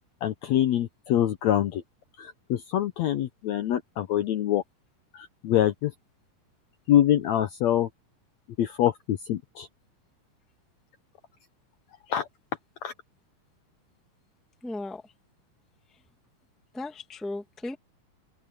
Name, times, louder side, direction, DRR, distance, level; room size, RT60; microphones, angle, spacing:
voice 1, 0.2-1.8 2.2-4.6 5.1-5.9 6.9-7.9 8.6-9.7 12.1-12.3 12.8-12.9, left 11 dB, 70° left, 1.7 m, -25 dB
voice 2, 14.6-15.0 16.7-17.8, left 2 dB, ahead, 0.9 m, -35 dB
open air
omnidirectional pair, 4.0 m